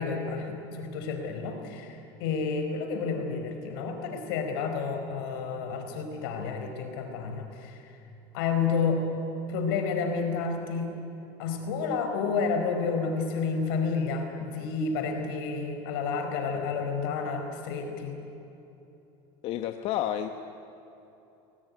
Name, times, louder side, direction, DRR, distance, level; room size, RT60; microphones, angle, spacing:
voice 1, 0.0-8.0 8.3-9.0 9.5-10.9 11.4-18.2, left 5 dB, 85° left, 5 dB, 4.5 m, -30 dB
voice 2, 19.4-20.3, left 11 dB, 55° left, 7 dB, 1.1 m, -30 dB
24.0 x 17.5 x 9.8 m, 3.0 s
supercardioid pair, 125°, 12 cm